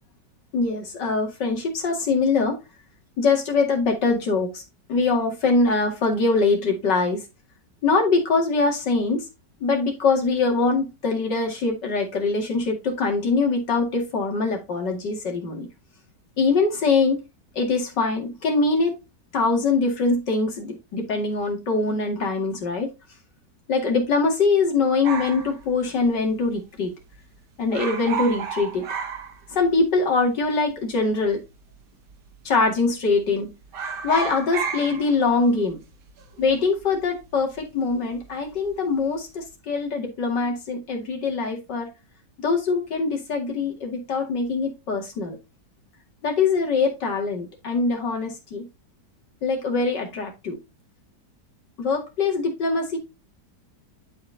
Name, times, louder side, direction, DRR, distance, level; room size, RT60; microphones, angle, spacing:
voice 1, 0.5-2.6 3.2-4.6 4.9-7.2 7.8-9.3 9.6-15.7 16.4-17.2 17.6-19.0 19.3-22.9 23.7-26.9 27.6-28.9 29.5-31.4 32.4-33.5 34.0-35.8 36.4-41.9 42.4-45.4 46.2-48.7 49.4-50.6 51.8-53.0, left 4 dB, 80° left, 2.8 m, -23 dB
sound 1, 25.0-26.5 26.8-26.9 27.1-27.4 27.7-29.9 30.2-30.3 31.1-31.8 32.1-32.4 32.7-33.3 33.6-38.3 38.5-39.0, right 6 dB, 80° right, 1.8 m, -33 dB
11.5 x 4.6 x 2.8 m
omnidirectional pair, 1.8 m